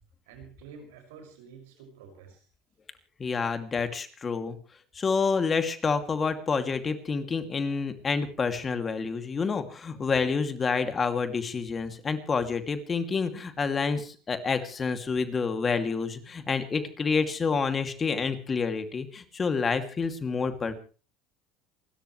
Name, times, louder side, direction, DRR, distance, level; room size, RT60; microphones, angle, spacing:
voice 1, 0.3-2.5, right 6 dB, 85° right, 4 dB, 6.3 m, -49 dB
voice 2, 3.2-4.6 5.0-20.8, left 5 dB, 30° left, 7 dB, 2.7 m, -28 dB
28.5 x 13.5 x 3.3 m, 0.37 s
supercardioid pair, 90°, 0 cm